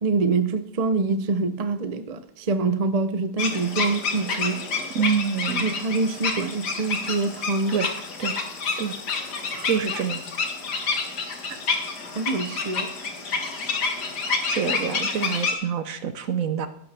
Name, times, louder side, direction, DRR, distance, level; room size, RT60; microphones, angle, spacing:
voice 1, 0.0-4.6 5.6-7.8 9.5-9.8 12.2-13.1, right 3 dB, 40° right, 10 dB, 0.5 m, -25 dB
sound 1, 3.4-15.5, left 4 dB, 70° left, 2.2 m, -29 dB
voice 2, 4.9-5.7 7.7-7.9 8.2-8.4 8.8-8.9 9.6-10.2 14.5-16.7, right 7 dB, 60° right, 10 dB, 1.0 m, -26 dB
15.5 x 12.5 x 3.4 m, 0.74 s
omnidirectional pair, 1.8 m